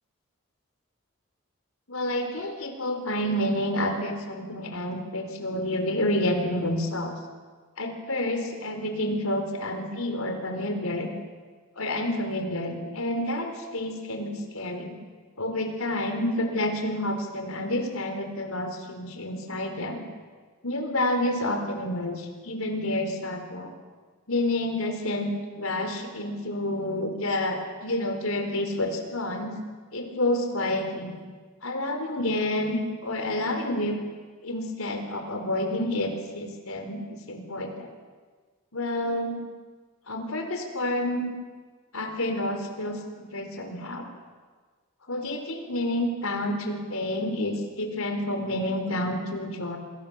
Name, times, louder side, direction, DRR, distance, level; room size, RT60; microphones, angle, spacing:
voice 1, 1.9-7.1 7.8-11.1 11.8-14.9 15.4-20.0 20.6-23.7 24.3-29.5 29.9-31.2 31.6-34.0 34.4-37.9 38.7-39.4 40.1-41.3 41.9-44.1 45.1-49.8, left 1 dB, 85° left, 5 dB, 4.3 m, -29 dB
28.0 x 21.5 x 7.4 m, 1.5 s
head